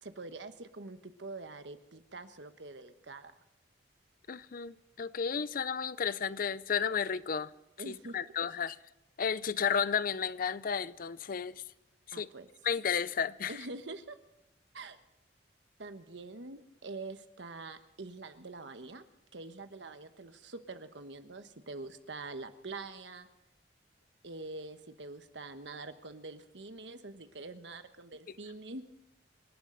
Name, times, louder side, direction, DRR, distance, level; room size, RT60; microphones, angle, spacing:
voice 1, 0.0-3.3 7.8-8.2 12.1-12.5 13.5-14.2 14.7-15.0 15.8-19.0 19.3-23.3 24.2-28.8, right 3 dB, 80° right, 1.3 m, -45 dB
voice 2, 4.3-7.5 7.9-8.8 9.2-11.6 12.1-12.3 12.6-13.6, left 6 dB, 50° left, 0.5 m, -33 dB
27.5 x 12.0 x 4.0 m
head